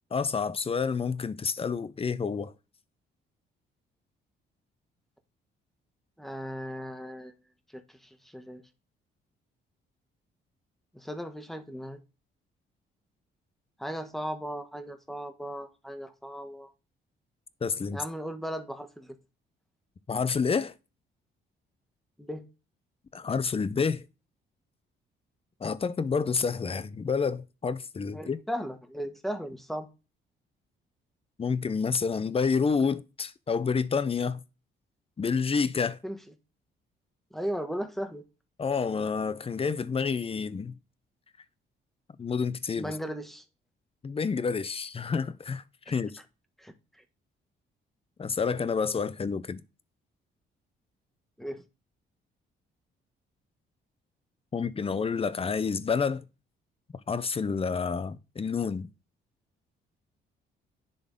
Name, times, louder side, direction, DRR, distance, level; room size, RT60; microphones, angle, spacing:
voice 1, 0.1-2.5 17.6-18.0 20.1-20.7 23.1-24.0 25.6-28.4 31.4-34.4 35.2-36.0 38.6-40.7 42.2-43.0 44.0-46.1 48.2-49.6 54.5-56.2 57.1-58.9, left 5 dB, 30° left, 0.8 m, -29 dB
voice 2, 6.2-7.3 7.7-7.8 8.3-8.6 10.9-12.0 13.8-16.7 17.9-19.1 22.2-22.4 28.1-29.9 36.0-36.2 37.3-38.2 42.8-43.4 45.9-46.0 46.6-46.7 51.4-51.6, equal, ahead, 1.4 m, -36 dB
10.5 x 3.9 x 3.9 m
cardioid pair, 90°, 20 cm